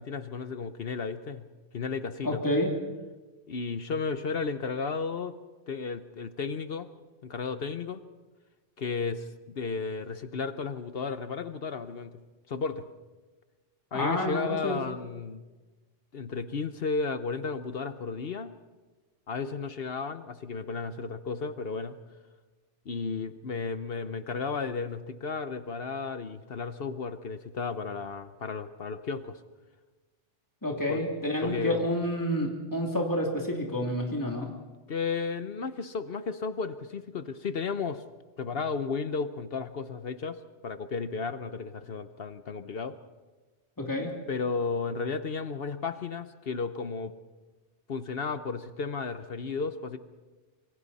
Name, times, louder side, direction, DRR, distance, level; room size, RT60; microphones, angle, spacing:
voice 1, 0.0-1.5 1.7-2.4 3.5-5.4 5.7-6.9 7.2-8.0 8.8-12.2 12.5-12.9 13.9-15.4 16.1-18.5 19.3-22.0 22.9-29.4 30.9-31.0 31.4-31.8 34.9-38.0 38.4-43.0 44.3-47.1 47.9-50.0, left 4 dB, 55° left, 11 dB, 1.0 m, -33 dB
voice 2, 2.2-2.7 13.9-14.8 30.6-34.5 43.8-44.1, left 1 dB, 15° left, 0 dB, 2.8 m, -29 dB
26.5 x 24.0 x 4.2 m, 1.2 s
omnidirectional pair, 1.2 m